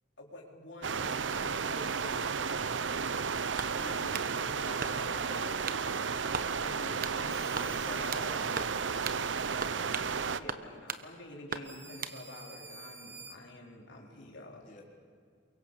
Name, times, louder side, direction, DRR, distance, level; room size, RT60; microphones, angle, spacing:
voice 1, 0.2-2.9 3.7-5.6 6.6-8.6 10.3-14.7, left 1 dB, 80° left, -1 dB, 3.9 m, -48 dB
sound 1, 0.8-10.4, right 5 dB, 90° right, 0.8 m, -33 dB
voice 2, 3.3-3.7 13.9-14.8, left 2 dB, 45° left, -2 dB, 3.8 m, -58 dB
sound 2, 3.6-4.3 4.8-5.2 5.7-5.9 6.3-6.5 7.0-7.2 7.5-8.3 8.6-8.8 9.0-9.2 9.6-10.1 10.5-11.0 11.5-12.2, right 6 dB, 50° right, 1.1 m, -38 dB
sound 3, 7.3-10.1 10.9-11.0 11.6-13.4, right 3 dB, 15° right, 1.8 m, -52 dB
28.5 x 23.5 x 7.4 m, 2.2 s
head